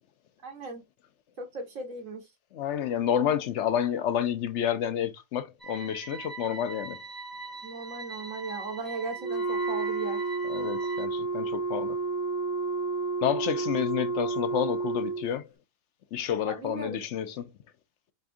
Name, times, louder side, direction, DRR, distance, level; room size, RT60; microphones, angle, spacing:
voice 1, 0.4-0.8 1.4-2.2 7.6-10.2 16.5-17.0, right 3 dB, 75° right, 1.9 m, -37 dB
voice 2, 2.5-7.0 10.5-12.0 13.2-15.5 16.1-17.5, left 9 dB, 70° left, 0.9 m, -29 dB
sound 1, 5.6-11.1, right 4 dB, 20° right, 0.7 m, -42 dB
Wind instrument woodwind instrument, 9.2-15.3, right 3 dB, 45° left, 1.0 m, -30 dB
4.2 x 2.6 x 4.7 m
omnidirectional pair, 1.4 m